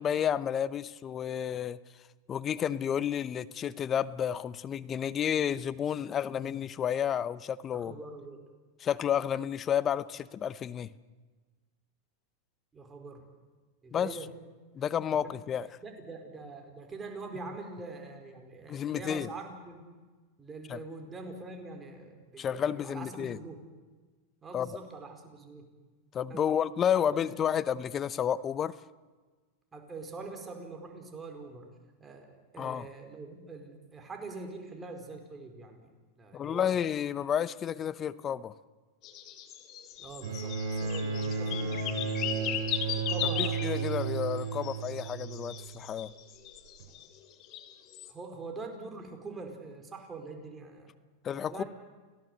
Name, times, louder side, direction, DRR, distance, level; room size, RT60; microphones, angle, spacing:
voice 1, 0.0-1.8 2.3-7.9 8.8-10.9 13.9-14.2 14.7-15.7 18.7-19.3 20.7-20.8 22.4-23.4 24.5-24.7 26.1-28.8 32.6-32.9 36.3-38.5 43.4-46.1 51.2-51.6, left 9 dB, 25° left, 17 dB, 0.8 m, -31 dB
voice 2, 7.7-8.4 12.7-13.2 13.8-14.3 15.8-19.8 20.4-23.6 24.4-25.7 26.3-26.4 26.9-27.2 29.7-31.7 32.0-35.9 36.2-36.8 40.0-43.6 48.1-50.9 51.3-51.7, right 3 dB, 15° right, 3 dB, 4.6 m, -44 dB
sound 1, 39.0-47.1 47.4-48.1, left 10 dB, 45° left, 2.6 m, -37 dB
Bowed string instrument, 40.2-45.7 46.8-46.9, right 5 dB, 75° right, 7.0 m, -33 dB
29.5 x 17.5 x 8.0 m, 1.4 s
hypercardioid pair, 125°, 0 cm